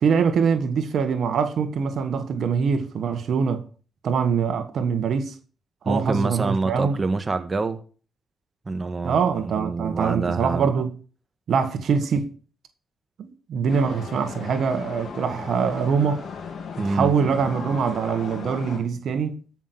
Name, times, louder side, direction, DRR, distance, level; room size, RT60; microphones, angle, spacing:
voice 1, 0.0-3.6 4.0-5.3 5.8-7.0 9.0-10.9 11.5-12.3 13.2-16.2 16.8-19.4, right 6 dB, 75° right, 1.5 m, -23 dB
voice 2, 5.8-7.8 8.6-10.7 16.8-17.1, right 3 dB, 35° right, 1.6 m, -26 dB
sound 1, 13.7-18.8, left 5 dB, 70° left, 3.2 m, -37 dB
13.5 x 6.1 x 6.0 m
cardioid pair, 65°, 0 cm